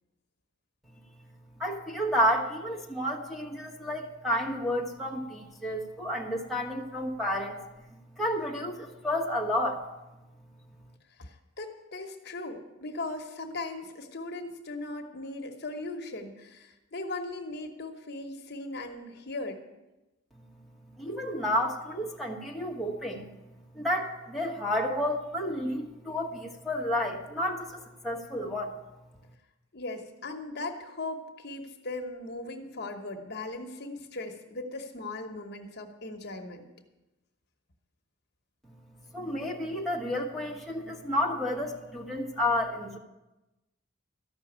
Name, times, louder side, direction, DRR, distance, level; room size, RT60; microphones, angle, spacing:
voice 1, 1.6-7.6 8.1-9.8 21.0-23.3 23.7-28.7 39.1-43.0, left 1 dB, ahead, -3 dB, 1.4 m, -31 dB
voice 2, 11.2-19.6 29.7-36.6, left 2 dB, 50° left, 4 dB, 1.1 m, -38 dB
13.5 x 6.0 x 8.6 m, 1.0 s
head